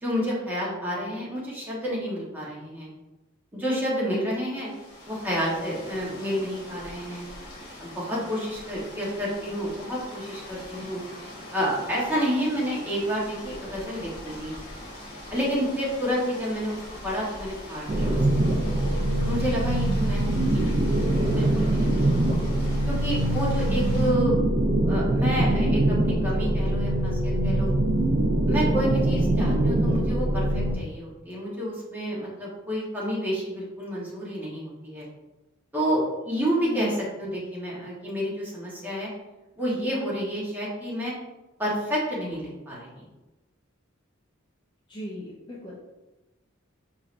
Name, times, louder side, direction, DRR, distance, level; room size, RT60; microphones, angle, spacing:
voice 1, 0.0-2.9 3.5-4.7 5.1-7.2 7.8-11.0 11.5-14.5 15.3-18.5 19.2-20.9 21.3-22.2 22.9-24.4 24.9-27.7 28.5-35.1 35.7-39.1 39.6-41.1 41.6-43.0, equal, 10° right, -6 dB, 1.0 m, -29 dB
sound 1, 4.5-24.1, left 1 dB, 50° left, 1.1 m, -42 dB
sound 2, 17.9-30.8, right 1 dB, 30° right, 0.4 m, -23 dB
voice 2, 44.9-46.0, left 1 dB, 20° left, -5 dB, 0.6 m, -38 dB
4.6 x 3.1 x 2.5 m, 1.1 s
head